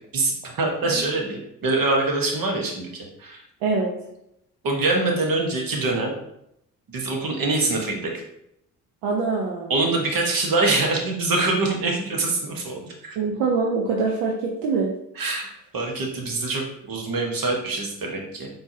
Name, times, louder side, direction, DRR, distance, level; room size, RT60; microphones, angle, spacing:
voice 1, 0.1-3.4 4.6-6.1 6.9-8.2 9.7-13.2 15.2-18.5, right 2 dB, 50° right, 1 dB, 1.2 m, -24 dB
voice 2, 3.6-3.9 9.0-9.7 13.2-14.9, right 4 dB, 75° right, -1 dB, 0.7 m, -24 dB
4.4 x 3.2 x 2.8 m, 0.78 s
hypercardioid pair, 45°, 43 cm